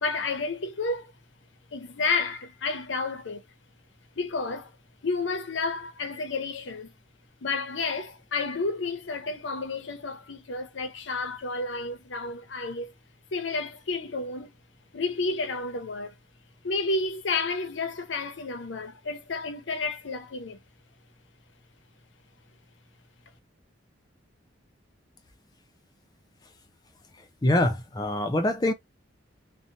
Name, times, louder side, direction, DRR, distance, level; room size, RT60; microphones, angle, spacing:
voice 1, 0.0-1.1 1.7-3.4 4.2-4.7 5.0-6.9 7.4-12.9 13.3-14.5 14.9-16.1 16.6-20.6, left 3 dB, 80° left, 0.7 m, -31 dB
voice 2, 27.4-28.7, left 1 dB, 20° left, 0.5 m, -24 dB
2.8 x 2.2 x 2.6 m
head